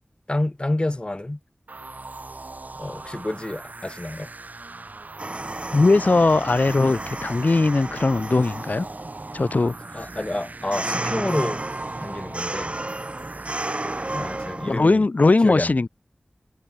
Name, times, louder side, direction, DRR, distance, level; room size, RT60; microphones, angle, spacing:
voice 1, 0.3-1.4 2.8-4.3 9.9-11.6 12.0-12.8 14.1-15.0 15.4-15.8, left 1 dB, 35° left, 4.2 m, -28 dB
sound 1, 1.7-14.5, right 3 dB, 65° right, 3.9 m, -40 dB
Creaking Metal, 5.2-14.8, right 2 dB, 40° right, 4.2 m, -32 dB
voice 2, 5.7-8.9 9.3-9.7 14.7-15.9, left 3 dB, 65° left, 0.9 m, -19 dB
wide cardioid pair, 45°, 3 cm